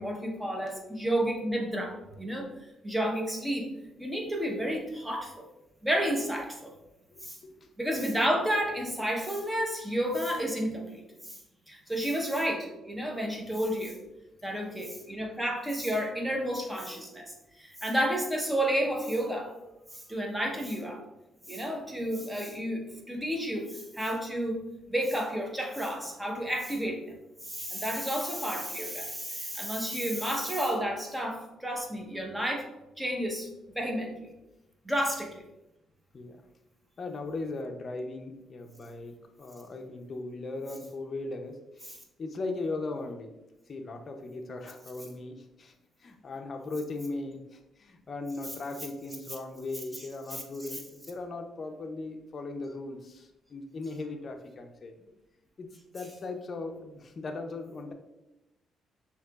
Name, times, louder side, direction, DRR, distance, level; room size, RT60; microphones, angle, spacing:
voice 1, 0.0-2.5 2.8-3.7 4.0-5.5 5.8-6.7 7.2-7.4 7.8-11.4 11.7-14.0 14.4-19.5 19.9-21.0 21.5-24.6 24.9-27.0 27.4-32.7 33.0-33.5 33.7-34.3 34.8-35.4 41.9-42.0 50.3-50.4, equal, 10° right, 1 dB, 0.9 m, -31 dB
voice 2, 7.1-7.7 29.8-29.9 36.1-36.4 37.0-43.3 43.7-45.7 46.0-55.1 55.6-57.9, left 3 dB, 40° left, 4 dB, 0.6 m, -38 dB
6.4 x 2.9 x 2.4 m, 0.93 s
cardioid pair, 90°, 0 cm